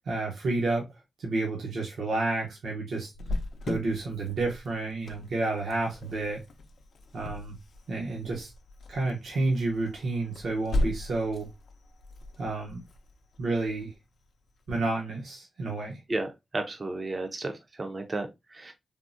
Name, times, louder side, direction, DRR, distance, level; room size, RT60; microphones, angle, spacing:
voice 1, 0.1-0.9 1.2-3.1 3.6-6.4 7.1-7.5 7.9-8.5 8.9-11.5 12.4-12.8 13.4-13.9 14.7-16.0, right 2 dB, 80° right, 0.8 m, -30 dB
Cricket, 3.1-14.6, left 1 dB, 75° left, 0.5 m, -38 dB
voice 2, 16.1-18.7, right 2 dB, 35° right, 0.5 m, -33 dB
3.5 x 2.1 x 2.4 m
wide cardioid pair, 95°, 0 cm